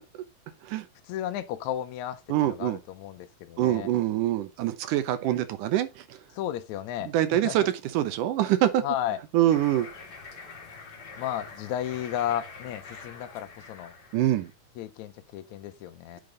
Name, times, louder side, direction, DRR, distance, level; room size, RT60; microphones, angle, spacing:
voice 1, 1.1-3.9 6.3-7.6 8.8-9.2 11.2-13.9 14.8-16.2, left 11 dB, 75° left, 1.9 m, -33 dB
voice 2, 2.3-2.8 3.6-6.2 7.0-7.6 7.9-8.8 9.3-9.9 14.1-14.5, right 13 dB, 80° right, 2.4 m, -25 dB
sound 1, 9.5-14.5, left 4 dB, 40° left, 2.1 m, -45 dB
8.8 x 5.2 x 3.9 m
omnidirectional pair, 3.7 m